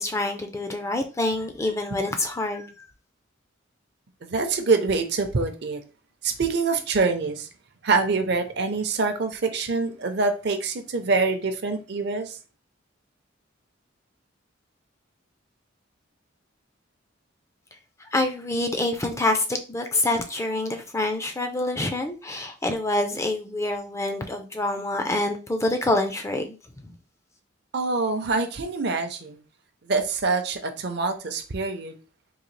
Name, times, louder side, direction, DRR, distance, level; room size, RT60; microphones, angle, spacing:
voice 1, 0.0-2.9 18.1-26.9, left 2 dB, 15° left, 0.4 m, -26 dB
voice 2, 4.2-5.8 6.2-7.5 7.8-12.4 27.7-29.4 29.8-31.9, right 4 dB, 55° right, 0.6 m, -25 dB
3.8 x 2.8 x 3.1 m
head